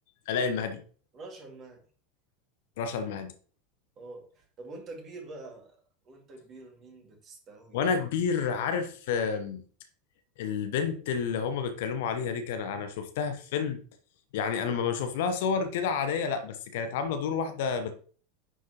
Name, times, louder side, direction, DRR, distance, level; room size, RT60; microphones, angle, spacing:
voice 1, 0.3-0.8 2.8-3.3 7.7-9.6 10.4-13.8 14.3-17.9, left 6 dB, 55° left, 10 dB, 1.0 m, -30 dB
voice 2, 1.1-1.8 4.0-7.8, right 2 dB, 35° right, 3 dB, 2.1 m, -46 dB
10.0 x 4.7 x 3.0 m, 0.41 s
figure-of-eight pair, 80°, 0 cm